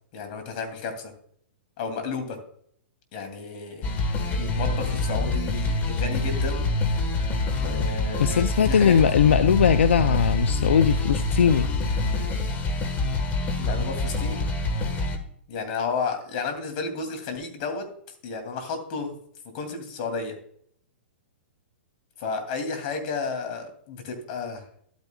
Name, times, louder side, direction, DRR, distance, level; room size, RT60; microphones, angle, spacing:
voice 1, 0.1-1.1 1.8-2.4 3.1-3.9 4.3-6.6 7.6-8.9 13.6-14.4 15.5-17.9 18.2-19.1 19.5-20.4 22.2-24.6, left 4 dB, 45° left, 2.7 m, -32 dB
sound 1, 3.8-15.2, left 2 dB, 25° left, 1.4 m, -26 dB
voice 2, 8.2-11.7, left 7 dB, 85° left, 0.5 m, -20 dB
11.5 x 9.2 x 2.3 m
hypercardioid pair, 135°, 6 cm